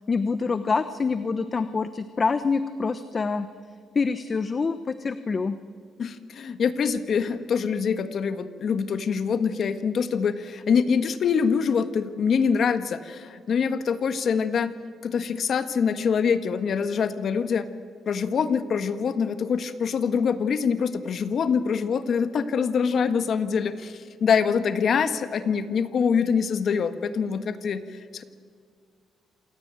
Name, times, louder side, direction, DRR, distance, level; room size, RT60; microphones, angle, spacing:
voice 1, 0.1-3.5 3.9-5.6, left 4 dB, 35° left, 11 dB, 1.0 m, -26 dB
voice 2, 6.0-14.7 15.0-17.7 18.0-28.2, left 6 dB, 55° left, 10 dB, 1.5 m, -25 dB
27.0 x 18.5 x 9.0 m, 2.1 s
cardioid pair, 90°, 0 cm